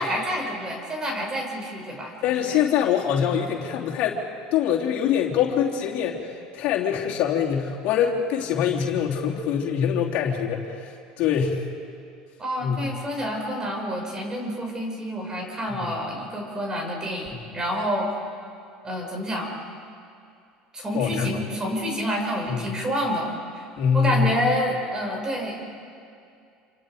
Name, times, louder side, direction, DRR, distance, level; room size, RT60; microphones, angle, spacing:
voice 1, 0.0-2.7 12.4-18.1 18.8-19.5 20.7-23.6 23.9-25.8, equal, 25° right, 1 dB, 6.5 m, -28 dB
voice 2, 2.2-4.2 4.5-11.7 12.6-12.8 20.9-21.3 22.5-22.7 23.8-24.3, left 8 dB, 60° left, -2 dB, 3.2 m, -24 dB
28.0 x 26.0 x 5.2 m, 2.4 s
supercardioid pair, 90°, 3 cm